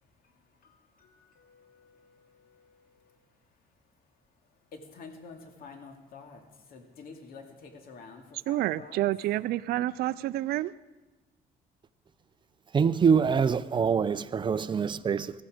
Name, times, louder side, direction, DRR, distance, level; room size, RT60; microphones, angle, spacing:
voice 1, 0.2-3.2 4.7-9.0, left 4 dB, 60° left, 2.5 m, -50 dB
voice 2, 8.5-10.7, right 15 dB, 70° right, 0.4 m, -29 dB
voice 3, 12.7-15.3, right 6 dB, 30° right, 0.6 m, -24 dB
18.0 x 14.5 x 5.0 m
cardioid pair, 110°, 17 cm